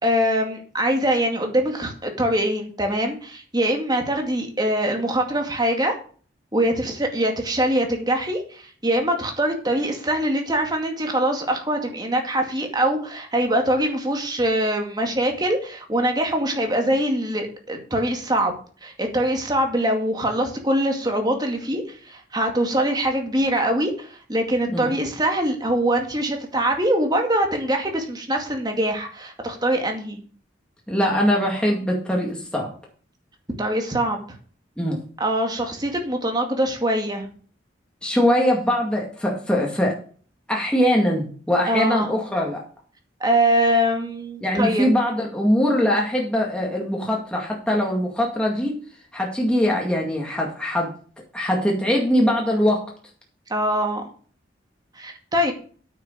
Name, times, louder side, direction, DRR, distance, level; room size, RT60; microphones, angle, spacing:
voice 1, 0.0-6.0 6.5-30.2 33.6-34.2 35.2-37.3 41.7-42.1 43.2-44.9 53.5-54.0 55.0-55.5, right 1 dB, 20° right, 3 dB, 2.1 m, -23 dB
voice 2, 30.9-32.7 34.8-35.0 38.0-40.0 40.5-42.6 44.4-48.7 49.1-50.9 51.3-52.8, equal, 5° left, -1 dB, 2.1 m, -22 dB
9.1 x 6.5 x 6.6 m, 0.43 s
head